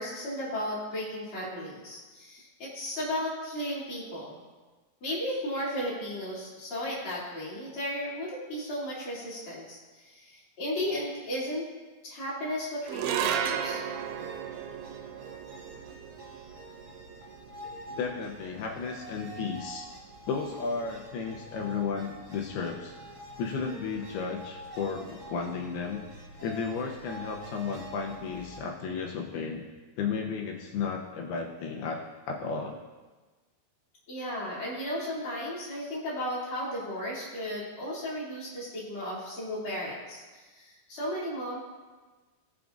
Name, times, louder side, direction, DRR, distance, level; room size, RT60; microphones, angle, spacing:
voice 1, 0.0-4.4 5.0-11.6 12.0-13.8 34.1-41.6, equal, 35° left, -7 dB, 3.2 m, -35 dB
sound 1, 12.9-19.4, right 8 dB, 90° right, 2.6 m, -35 dB
sound 2, 13.9-28.6, right 2 dB, 35° right, 2.4 m, -46 dB
voice 2, 17.9-19.9 20.3-22.9 23.4-26.0 26.4-29.7 30.0-32.8, left 5 dB, 85° left, 1 dB, 2.7 m, -33 dB
18.0 x 6.0 x 2.6 m, 1.3 s
omnidirectional pair, 4.5 m